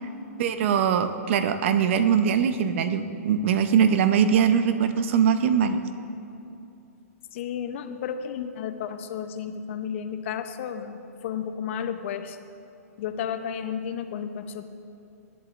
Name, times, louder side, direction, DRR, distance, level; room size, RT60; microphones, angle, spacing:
voice 1, 0.4-5.8, right 7 dB, 50° right, 9 dB, 0.6 m, -22 dB
voice 2, 7.3-12.4 13.0-14.6, left 8 dB, 50° left, 7 dB, 0.7 m, -32 dB
16.0 x 11.0 x 2.5 m, 2.7 s
hypercardioid pair, 150°, 9 cm